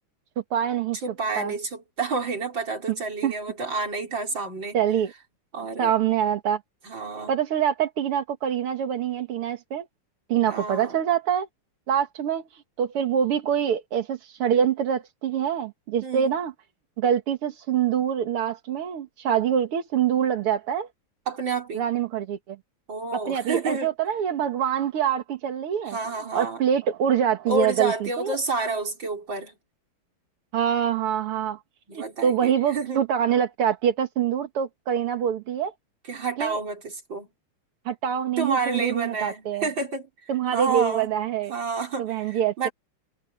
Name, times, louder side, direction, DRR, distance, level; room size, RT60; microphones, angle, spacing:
voice 1, 0.5-1.0 1.4-1.5 3.2-3.3 4.7-5.1 5.8-6.6 7.3-9.9 10.3-11.5 11.9-16.5 17.0-20.9 21.7-22.6 23.1-28.4 30.5-31.6 31.9-35.7 36.4-36.6 37.9-39.7 40.3-41.5 42.0-42.7, right 9 dB, 85° right, 2.4 m, -25 dB
voice 2, 1.0-4.8 5.5-5.9 6.8-7.4 10.4-11.0 16.0-16.4 21.3-21.9 22.9-23.9 25.9-26.6 27.5-29.5 31.9-33.1 36.1-37.3 38.4-41.1 41.5-42.7, right 4 dB, 55° right, 5.5 m, -29 dB
omnidirectional pair, 2.4 m